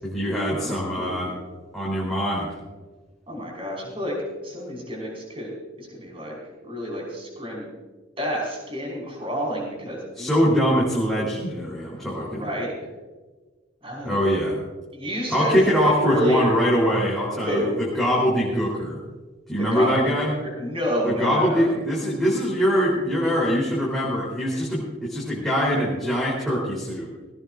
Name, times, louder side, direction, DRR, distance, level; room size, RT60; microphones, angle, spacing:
voice 1, 0.0-1.3 1.7-2.5 10.1-12.5 14.0-14.6 15.3-19.0 19.5-20.3 21.0-27.1, equal, ahead, -7 dB, 3.7 m, -23 dB
voice 2, 0.6-1.4 3.3-4.1 4.4-6.4 6.6-7.7 8.2-10.3 12.1-12.7 13.8-14.4 14.9-16.5 17.4-17.7 19.6-20.1 20.6-21.7, equal, 30° right, -2 dB, 5.5 m, -29 dB
19.0 x 18.0 x 2.6 m, 1.3 s
head